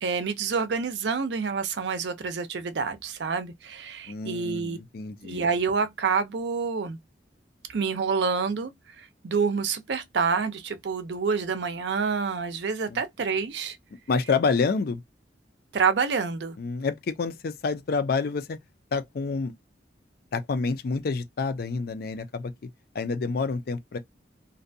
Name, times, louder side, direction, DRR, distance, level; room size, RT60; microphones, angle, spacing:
voice 1, 0.0-4.8 5.2-7.0 7.7-8.7 9.0-13.8 15.7-16.6, right 5 dB, 70° right, 0.5 m, -27 dB
voice 2, 4.1-5.4 12.9-13.0 14.1-15.0 16.6-18.6 18.9-19.5 20.3-22.5 22.9-24.0, left 4 dB, 55° left, 0.4 m, -28 dB
2.5 x 2.2 x 2.6 m
head